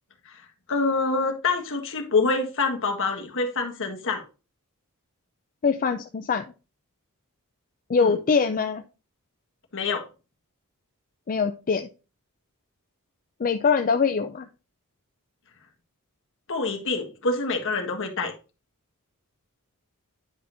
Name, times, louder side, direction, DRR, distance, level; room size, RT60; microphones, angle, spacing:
voice 1, 0.7-4.2 8.0-8.1 9.7-10.1 16.5-18.3, left 3 dB, 60° left, 1.7 m, -26 dB
voice 2, 5.6-6.4 7.9-8.8 11.3-11.9 13.4-14.5, left 5 dB, 40° left, 0.5 m, -23 dB
10.0 x 5.1 x 2.6 m
head